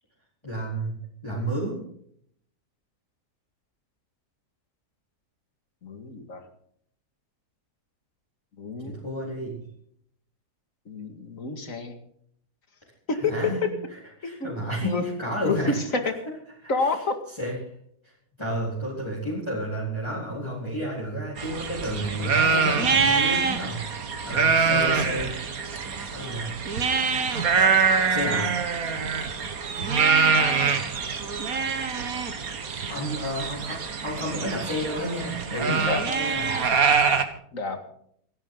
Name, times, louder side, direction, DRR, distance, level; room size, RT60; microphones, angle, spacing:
voice 1, 0.4-1.8 8.8-9.7 13.1-13.6 13.9-15.8 16.3-16.4 16.6-17.0 17.3-17.6 18.0-18.1 18.4-25.4 25.9-26.6 28.1-28.5 30.2-30.4 31.1-31.2 32.6-36.8, right 1 dB, 15° left, -6 dB, 4.2 m, -31 dB
voice 2, 5.8-6.4 8.6-9.0 10.9-12.0 13.2-13.3 14.2-14.5 14.8-15.0 15.4-15.6 16.7-17.1 30.3-30.8 32.9-33.1 35.7-36.0 37.5-37.8, left 4 dB, 55° left, 6 dB, 2.5 m, -30 dB
sound 1, 21.4-37.2, right 5 dB, 60° right, 1.8 m, -24 dB
27.5 x 11.0 x 3.9 m, 0.67 s
omnidirectional pair, 1.7 m